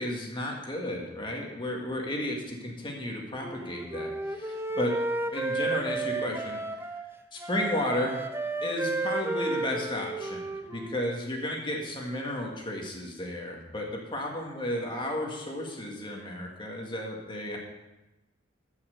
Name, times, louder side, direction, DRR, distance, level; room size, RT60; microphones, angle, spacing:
voice 1, 0.0-5.0 5.2-6.6 7.3-8.3 8.6-17.6, left 1 dB, 25° left, 0 dB, 1.7 m, -33 dB
Wind instrument woodwind instrument, 3.4-7.1 7.4-11.0, right 2 dB, 10° right, 0.6 m, -33 dB
14.5 x 5.7 x 6.5 m, 1.0 s
head